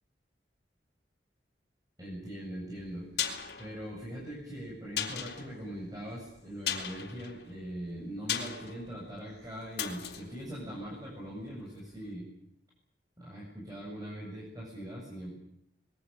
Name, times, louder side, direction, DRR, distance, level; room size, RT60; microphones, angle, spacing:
voice 1, 2.0-12.3 13.2-15.3, equal, 20° right, -4 dB, 7.6 m, -41 dB
sound 1, 2.8-11.6 11.9-12.0, left 8 dB, 65° left, 3.9 m, -39 dB
26.0 x 22.0 x 7.3 m, 0.78 s
head